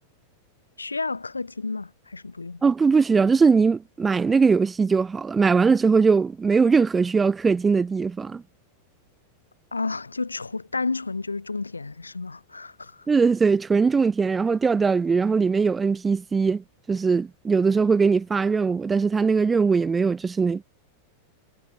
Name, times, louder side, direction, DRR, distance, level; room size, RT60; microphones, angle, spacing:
voice 1, 0.8-2.6 9.7-13.1, left 3 dB, 80° left, 2.5 m, -31 dB
voice 2, 2.6-8.4 13.1-20.6, right 5 dB, 15° right, 1.2 m, -21 dB
figure-of-eight pair, 90°, 0 cm